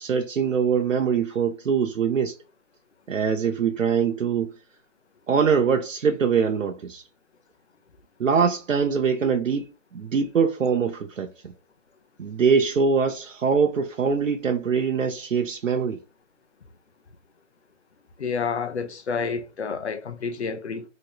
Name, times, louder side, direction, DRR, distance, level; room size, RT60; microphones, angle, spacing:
voice 1, 0.0-2.4 3.1-4.5 5.3-7.0 8.2-11.5 12.2-16.0, right 6 dB, 80° right, 0.6 m, -23 dB
voice 2, 18.2-20.8, left 5 dB, 60° left, 0.7 m, -29 dB
3.0 x 2.6 x 2.9 m
figure-of-eight pair, 165°, 38 cm